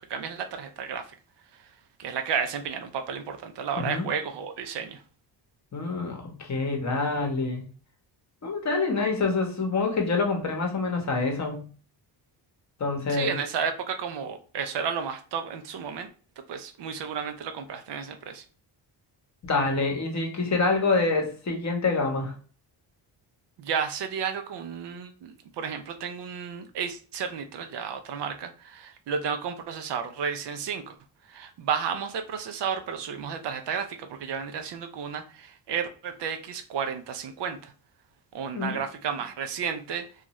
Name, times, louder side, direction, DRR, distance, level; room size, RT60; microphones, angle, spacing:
voice 1, 0.1-1.0 2.0-5.0 13.1-16.1 16.5-18.4 23.6-30.9 31.3-37.7 38.3-40.0, right 6 dB, 60° right, 7 dB, 0.6 m, -32 dB
voice 2, 5.7-7.7 8.4-11.7 12.8-13.4 19.4-22.3 38.5-38.8, left 3 dB, 35° left, 3 dB, 0.9 m, -26 dB
2.6 x 2.4 x 3.0 m, 0.39 s
cardioid pair, 75°, 47 cm